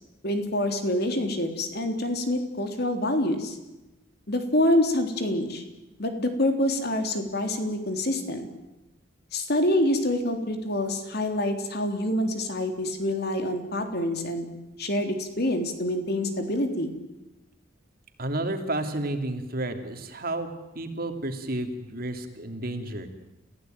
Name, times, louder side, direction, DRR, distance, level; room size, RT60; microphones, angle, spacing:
voice 1, 0.2-3.6 4.3-5.6 6.0-8.5 9.3-14.5 14.8-16.9, left 1 dB, 55° left, 6 dB, 3.6 m, -26 dB
voice 2, 18.2-20.5 20.7-23.1, right 1 dB, 50° right, 6 dB, 2.9 m, -31 dB
30.0 x 16.0 x 9.2 m, 1.0 s
head